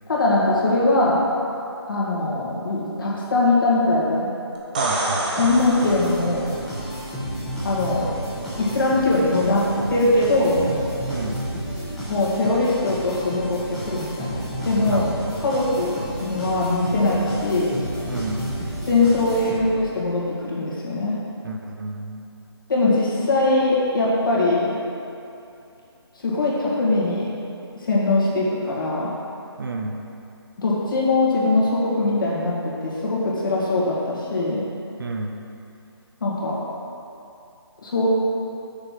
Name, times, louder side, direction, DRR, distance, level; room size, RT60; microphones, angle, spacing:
voice 1, 0.1-1.2 1.9-4.3 5.4-6.4 7.6-8.1 8.6-10.6 12.1-15.1 15.4-17.7 18.9-21.2 22.7-24.7 26.2-27.3 27.8-29.1 30.6-34.6 36.2-36.6 37.8-38.1, left 2 dB, 50° left, -5 dB, 2.0 m, -21 dB
sound 1, 4.6-6.5 10.2-10.3, right 2 dB, 20° right, 0.6 m, -27 dB
voice 2, 4.8-5.3 11.1-11.5 14.8-15.5 18.0-18.6 21.4-22.3 29.6-30.1 35.0-35.5, right 2 dB, 55° right, 3 dB, 0.8 m, -30 dB
sound 2, 5.4-19.9, right 1 dB, ahead, 1.2 m, -31 dB
6.8 x 5.5 x 6.0 m, 2.7 s
figure-of-eight pair, 165°, 14 cm